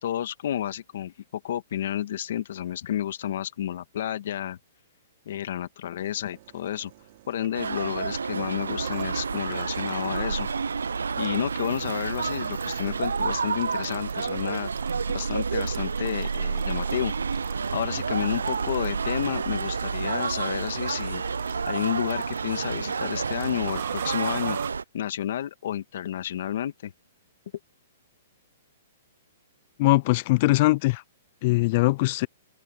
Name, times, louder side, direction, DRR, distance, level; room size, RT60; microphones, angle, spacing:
voice 1, 0.0-4.6 5.3-6.9 7.3-10.5 11.1-14.7 15.1-17.1 17.7-21.2 21.7-24.6 24.9-26.9, left 11 dB, 65° left, 2.1 m, -31 dB
sound 1, 6.0-24.7, right 16 dB, 50° right, 2.1 m, -44 dB
sound 2, 7.5-24.8, right 5 dB, 90° right, 0.4 m, -29 dB
voice 2, 29.8-31.0 31.4-32.3, left 21 dB, 45° left, 0.5 m, -21 dB
hypercardioid pair, 125°, 0 cm